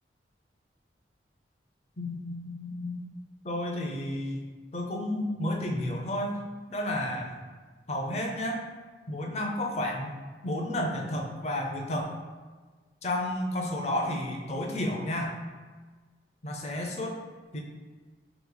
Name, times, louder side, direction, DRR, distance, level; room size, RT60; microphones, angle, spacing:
voice 1, 2.0-3.1 3.4-4.4 4.7-6.4 6.7-7.4 7.9-8.6 9.1-10.1 10.4-12.2 13.0-15.4 16.4-17.2 17.5-17.6, left 1 dB, 35° left, 1 dB, 0.5 m, -31 dB
3.2 x 3.0 x 3.8 m, 1.4 s
head